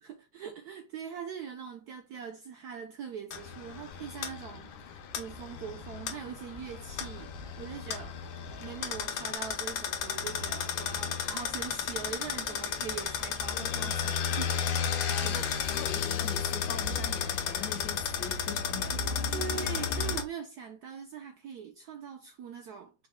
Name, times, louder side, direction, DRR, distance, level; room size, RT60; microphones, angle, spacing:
voice 1, 0.0-8.2 8.6-14.6 15.3-15.5 19.3-22.9, right 7 dB, 75° right, 0.9 m, -42 dB
sound 1, 3.3-20.2, left 7 dB, 90° left, 1.5 m, -33 dB
sound 2, 5.2-19.6, equal, 60° right, 1.7 m, -51 dB
voice 2, 15.2-19.0, left 8 dB, 70° left, 1.1 m, -42 dB
5.2 x 2.2 x 3.5 m
omnidirectional pair, 2.2 m